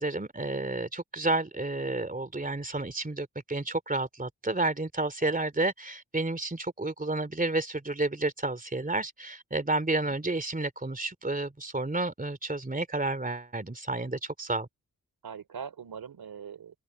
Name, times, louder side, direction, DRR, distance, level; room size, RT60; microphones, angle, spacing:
voice 1, 0.0-14.7, right 2 dB, 25° right, 3.2 m, -31 dB
voice 2, 15.2-16.8, right 7 dB, 90° right, 3.7 m, -42 dB
cardioid pair, 50°, 36 cm